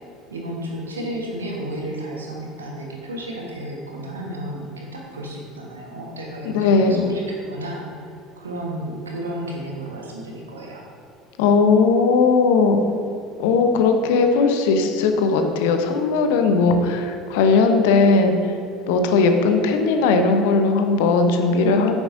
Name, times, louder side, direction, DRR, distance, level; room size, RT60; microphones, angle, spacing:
voice 1, 0.3-7.9 8.4-10.8 21.6-21.9, right 1 dB, 80° right, -1 dB, 1.4 m, -32 dB
voice 2, 6.5-7.1 11.4-12.8 13.4-18.4 18.9-21.9, left 4 dB, 60° left, 6 dB, 0.9 m, -18 dB
9.9 x 9.5 x 2.7 m, 2.3 s
figure-of-eight pair, 65°, 0 cm